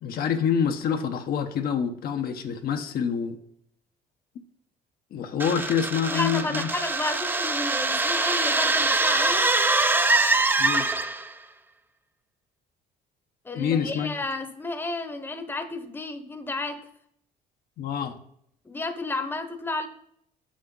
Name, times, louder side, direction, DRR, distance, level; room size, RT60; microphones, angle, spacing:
voice 1, 0.0-3.4 5.1-6.7 10.6-10.9 13.5-14.2 17.8-18.2, left 7 dB, 65° left, 5 dB, 0.9 m, -26 dB
sound 1, 5.4-11.3, right 2 dB, 10° right, 0.5 m, -24 dB
voice 2, 6.1-9.5 13.4-16.8 18.6-19.9, left 2 dB, 10° left, 7 dB, 0.9 m, -32 dB
7.1 x 6.3 x 3.9 m, 0.70 s
cardioid pair, 110°, 17 cm